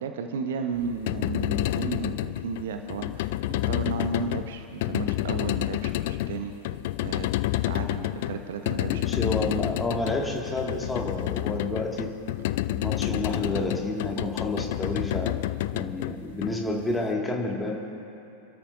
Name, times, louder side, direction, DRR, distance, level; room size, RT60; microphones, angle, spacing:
voice 1, 0.0-6.5 7.0-7.3 7.7-9.0, right 5 dB, 60° right, 6 dB, 1.0 m, -33 dB
sound 1, 0.8-17.0, left 15 dB, 50° left, 0.3 m, -29 dB
voice 2, 8.8-12.1 12.7-15.4 15.7-17.8, left 2 dB, 10° left, -1 dB, 2.1 m, -30 dB
29.5 x 13.0 x 2.7 m, 2.8 s
figure-of-eight pair, 90°, 0 cm